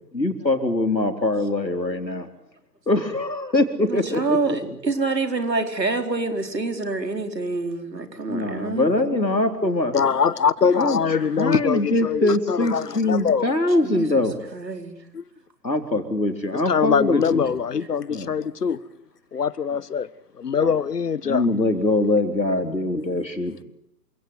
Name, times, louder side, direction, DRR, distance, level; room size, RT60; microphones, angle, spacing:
voice 1, 0.1-2.3 2.9-4.6 8.3-9.9 10.7-11.0 11.4-14.5 15.6-17.5 18.1-18.4 20.6-20.7 21.2-23.6, left 2 dB, 90° left, 4.3 m, -23 dB
voice 2, 3.9-8.9 13.8-14.2 14.5-15.0, right 3 dB, 80° right, 4.5 m, -26 dB
voice 3, 9.9-13.5 15.1-15.2 16.5-18.8 19.3-20.1 20.4-21.5, left 6 dB, 65° left, 1.5 m, -23 dB
27.5 x 17.5 x 9.6 m
figure-of-eight pair, 130°, 50 cm